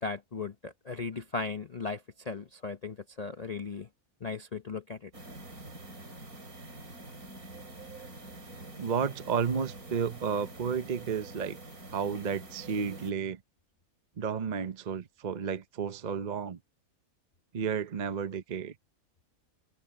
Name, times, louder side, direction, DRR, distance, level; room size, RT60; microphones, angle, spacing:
voice 1, 0.0-3.9 4.2-5.1, left 4 dB, 35° left, 0.7 m, -37 dB
sound 1, 5.1-13.1, right 2 dB, 75° right, 5.2 m, -46 dB
voice 2, 8.8-11.6 11.9-13.4 14.2-16.6 17.5-18.8, right 6 dB, 40° right, 0.7 m, -32 dB
omnidirectional pair, 1.5 m